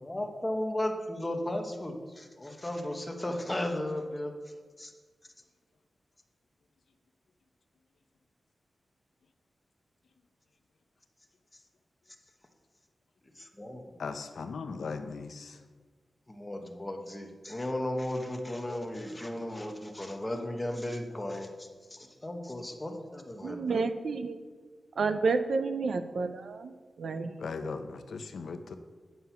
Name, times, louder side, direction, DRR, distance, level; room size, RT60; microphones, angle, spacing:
voice 1, 0.0-4.3 4.8-4.9 13.4-14.0 16.3-23.8, left 1 dB, 15° left, 3 dB, 1.0 m, -35 dB
voice 2, 14.0-15.6 27.4-28.8, left 4 dB, 85° left, 8 dB, 0.7 m, -38 dB
voice 3, 23.4-24.4 25.0-27.3, right 4 dB, 75° right, 9 dB, 0.6 m, -30 dB
9.6 x 6.2 x 5.7 m, 1.5 s
wide cardioid pair, 165°, 0 cm